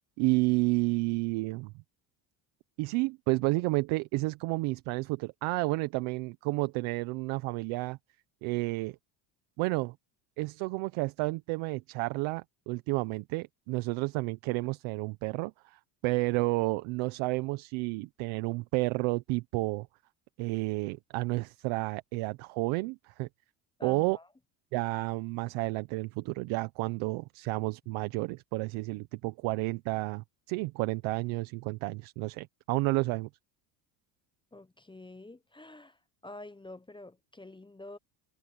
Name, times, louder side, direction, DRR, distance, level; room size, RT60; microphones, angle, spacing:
voice 1, 0.2-1.7 2.8-8.0 8.4-9.0 9.6-9.9 10.4-19.9 20.4-23.3 23.8-24.2 24.7-33.3, right 23 dB, 75° right, 1.2 m, -31 dB
voice 2, 23.8-24.3 34.5-38.0, left 2 dB, 10° left, 1.1 m, -48 dB
supercardioid pair, 95°, 48 cm